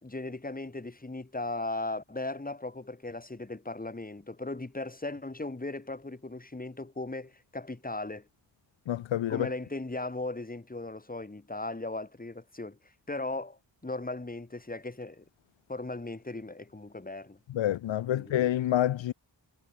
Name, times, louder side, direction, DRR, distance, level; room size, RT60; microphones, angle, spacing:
voice 1, 0.0-8.3 9.3-12.8 13.1-15.2 15.7-17.4 18.1-18.3, left 2 dB, 20° left, 3.2 m, -37 dB
voice 2, 8.9-9.5 17.5-19.1, left 12 dB, 80° left, 0.7 m, -28 dB
cardioid pair, 80°, 45 cm